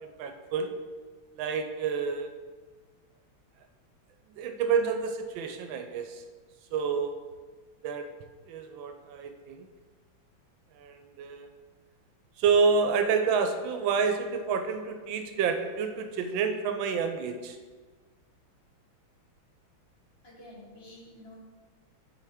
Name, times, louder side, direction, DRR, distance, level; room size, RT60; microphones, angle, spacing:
voice 1, 0.2-0.7 1.3-2.3 4.4-6.2 6.7-7.1 7.8-8.1 8.5-9.7 10.8-11.5 12.4-17.6, right 5 dB, 75° right, 6 dB, 1.3 m, -28 dB
voice 2, 20.2-21.4, left 1 dB, 35° left, -5 dB, 1.4 m, -49 dB
5.6 x 4.8 x 3.5 m, 1.4 s
omnidirectional pair, 2.2 m